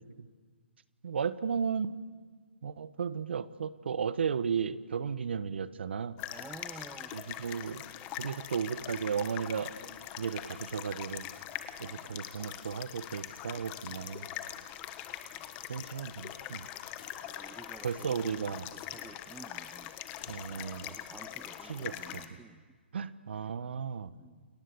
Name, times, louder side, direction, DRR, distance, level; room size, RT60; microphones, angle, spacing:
voice 1, 1.0-1.9 2.6-6.2 7.1-7.8 8.2-9.8 10.2-11.2 11.8-14.3 15.7-16.7 17.8-18.7 20.3-21.0 21.6-22.2 22.9-24.1, right 6 dB, 65° right, 14 dB, 1.3 m, -34 dB
sound 1, 6.2-22.3, left 12 dB, 20° left, 1.4 m, -43 dB
voice 2, 6.3-7.1 11.8-12.3 15.4-15.5 17.2-19.9 20.5-22.6 24.1-24.5, right 4 dB, 5° right, 11 dB, 0.7 m, -51 dB
sound 2, 14.9-18.4 18.7-20.6, left 6 dB, 40° left, 5.2 m, -62 dB
29.5 x 28.0 x 7.1 m, 1.5 s
hypercardioid pair, 145°, 6 cm